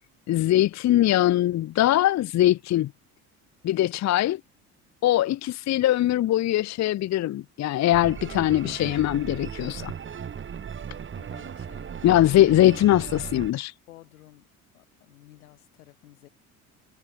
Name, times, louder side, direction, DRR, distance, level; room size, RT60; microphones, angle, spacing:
voice 1, 0.3-2.9 3.6-4.4 5.0-9.9 12.0-13.7, left 14 dB, 40° left, 0.8 m, -21 dB
sound 1, 7.9-13.5, right 7 dB, 25° right, 1.2 m, -37 dB
voice 2, 11.2-12.3 13.9-14.5 14.7-16.3, left 16 dB, 75° left, 3.5 m, -53 dB
figure-of-eight pair, 60°, 43 cm